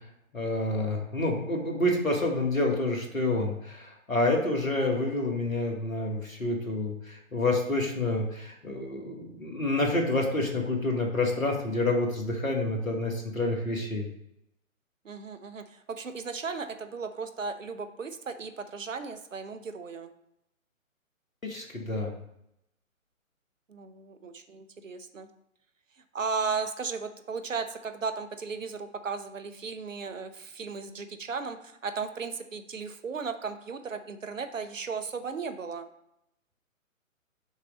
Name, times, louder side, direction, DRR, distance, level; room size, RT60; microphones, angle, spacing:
voice 1, 0.3-14.1 21.4-22.1, left 2 dB, 80° left, 1 dB, 1.8 m, -28 dB
voice 2, 15.0-20.1 23.7-25.3 26.1-35.9, right 5 dB, 70° right, 9 dB, 0.8 m, -36 dB
6.5 x 3.1 x 5.1 m, 0.79 s
figure-of-eight pair, 130°, 41 cm